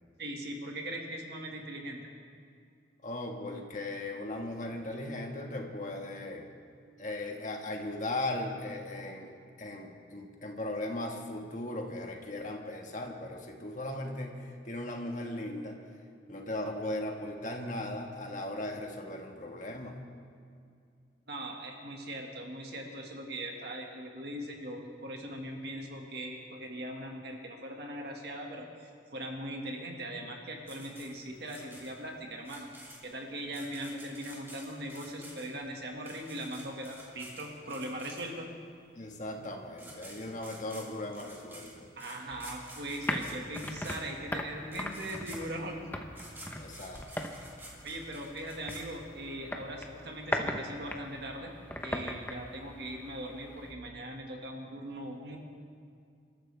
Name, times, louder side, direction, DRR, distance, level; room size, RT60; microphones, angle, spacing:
voice 1, 0.2-2.0 21.3-32.7 33.0-38.5 42.0-45.9 47.8-51.5 51.8-55.4, right 1 dB, 55° right, 1 dB, 1.9 m, -40 dB
voice 2, 3.0-6.4 7.0-15.8 16.3-20.0 39.0-41.9 46.5-47.2, left 1 dB, 40° left, 2 dB, 1.6 m, -38 dB
sound 1, 30.7-38.6 39.4-39.5 39.7-49.4, right 1 dB, 10° right, 2.8 m, -50 dB
sound 2, 42.3-53.7, left 1 dB, 10° left, 0.9 m, -40 dB
28.0 x 13.5 x 3.4 m, 2.3 s
head